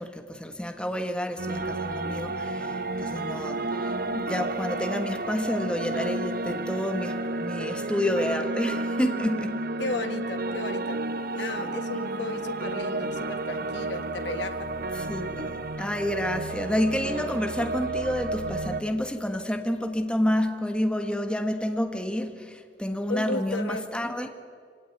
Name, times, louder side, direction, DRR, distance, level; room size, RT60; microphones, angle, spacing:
voice 1, 0.0-9.6 11.6-11.7 15.0-24.3, equal, 5° left, 6 dB, 1.4 m, -29 dB
sound 1, 1.4-18.8, right 2 dB, 55° right, 1.1 m, -31 dB
voice 2, 9.8-11.0 11.3-14.7 23.1-23.9, left 2 dB, 75° left, 7 dB, 1.5 m, -34 dB
24.5 x 17.5 x 9.6 m, 2.1 s
head